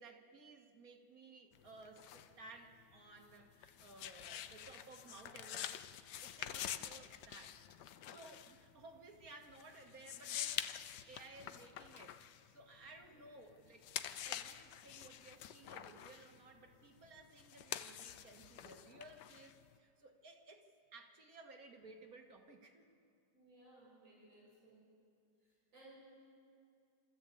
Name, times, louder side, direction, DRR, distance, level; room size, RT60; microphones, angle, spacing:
voice 1, 0.0-5.8 6.2-7.6 8.1-10.6 11.1-13.9 14.2-22.9, right 2 dB, 55° right, 3 dB, 2.0 m, -57 dB
sound 1, 1.5-13.3 13.7-19.8, left 10 dB, 75° left, 1.3 m, -47 dB
voice 2, 23.3-24.8 25.7-26.0, right 2 dB, 85° right, -6 dB, 6.8 m, -61 dB
26.0 x 13.5 x 8.5 m, 2.4 s
omnidirectional pair, 2.0 m